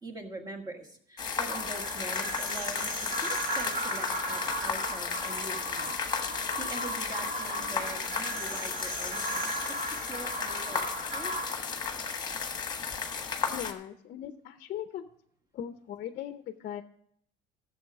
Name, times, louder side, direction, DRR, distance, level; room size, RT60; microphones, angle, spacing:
voice 1, 0.0-2.9 3.2-6.0 6.3-9.8 10.1-11.3, right 1 dB, 20° right, 3 dB, 1.6 m, -43 dB
sound 1, 1.2-13.7, left 5 dB, 20° left, 1.3 m, -34 dB
sound 2, 1.5-11.4, right 1 dB, 55° right, 3.4 m, -36 dB
voice 2, 13.5-15.1 15.5-16.8, left 10 dB, 45° left, 9 dB, 0.7 m, -39 dB
13.0 x 7.3 x 4.7 m, 0.68 s
cardioid pair, 145°, 19 cm